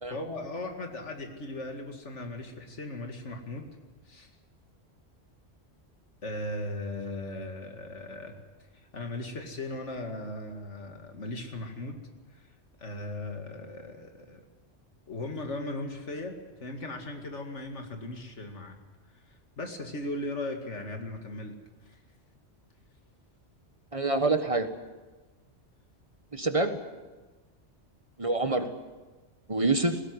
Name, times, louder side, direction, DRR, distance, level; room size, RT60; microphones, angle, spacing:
voice 1, 0.1-3.7 4.1-4.3 6.2-8.4 8.7-12.0 12.3-12.4 12.8-14.4 15.1-18.8 19.3-21.5 21.9-22.0, left 2 dB, 90° left, 5 dB, 2.6 m, -38 dB
voice 2, 23.9-24.7 26.3-26.8 28.2-28.7 29.5-30.0, right 2 dB, 30° right, 9 dB, 1.3 m, -26 dB
19.5 x 17.0 x 9.7 m, 1.2 s
omnidirectional pair, 1.2 m